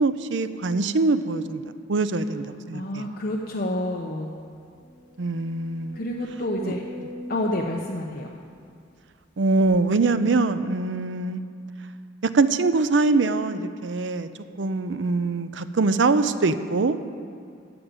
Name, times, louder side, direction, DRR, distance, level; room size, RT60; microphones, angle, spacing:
voice 1, 0.0-1.6 1.9-3.0 5.2-6.0 6.6-7.1 9.4-11.4 12.3-14.3 14.6-17.0, right 3 dB, 75° right, 12 dB, 0.6 m, -23 dB
voice 2, 2.7-4.3 5.9-6.8 7.3-8.3, left 1 dB, 55° left, 0 dB, 0.8 m, -28 dB
sound 1, 3.6-3.7 4.1-4.2 4.7-9.0 9.6-9.7, equal, 30° left, 2.7 m, -42 dB
14.0 x 5.1 x 9.1 m, 2.3 s
head